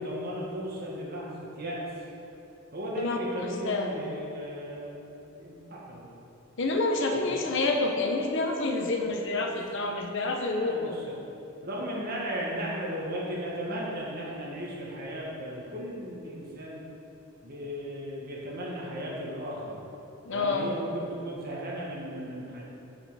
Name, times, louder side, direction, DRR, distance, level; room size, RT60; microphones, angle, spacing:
voice 1, 0.0-1.8 2.7-6.1 7.1-7.4 10.5-11.2 11.6-16.8 17.4-19.8 20.3-22.6, equal, 50° right, -4 dB, 1.7 m, -36 dB
voice 2, 6.6-11.0 20.2-20.7, left 3 dB, 65° left, 3 dB, 0.8 m, -28 dB
7.3 x 5.6 x 5.6 m, 3.0 s
head